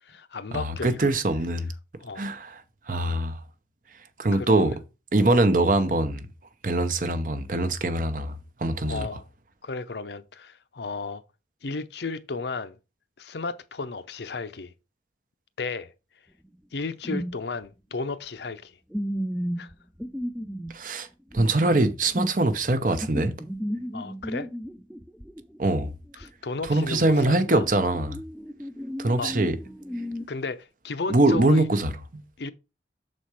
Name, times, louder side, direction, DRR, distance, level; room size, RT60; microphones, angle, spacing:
voice 1, 0.0-1.1 2.0-2.3 4.3-4.8 5.2-5.5 8.8-9.3 9.6-11.2 11.6-12.8 13.2-14.7 15.6-15.9 16.7-18.8 19.6-19.7 23.9-24.5 26.2-27.6 29.2-29.3 30.3-31.7 32.4-32.5, left 4 dB, 70° left, 0.6 m, -34 dB
voice 2, 0.5-1.7 2.2-2.6 2.9-3.4 4.2-4.7 5.1-6.3 6.6-9.1 20.7-21.1 21.3-23.3 25.6-25.9 26.7-28.2 29.0-29.6 31.1-32.2, right 2 dB, 45° right, 0.8 m, -23 dB
sound 1, 17.0-17.3 17.6-17.7 18.9-20.7 21.3-22.4 23.0-26.3 26.6-30.3, equal, ahead, 0.3 m, -34 dB
6.7 x 4.2 x 4.7 m
head